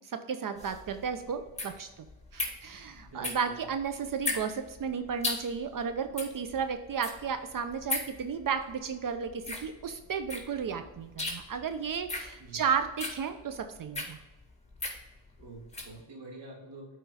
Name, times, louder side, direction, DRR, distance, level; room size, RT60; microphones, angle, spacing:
voice 1, 0.1-2.1 2.3-14.2, right 6 dB, 50° right, 9 dB, 0.7 m, -33 dB
sound 1, 0.6-16.0, left 2 dB, 15° left, 2.0 m, -38 dB
voice 2, 2.9-3.6 12.4-12.6 15.4-16.9, right 2 dB, 75° right, 0 dB, 2.1 m, -47 dB
7.9 x 4.5 x 4.1 m, 1.1 s
cardioid pair, 80°, 43 cm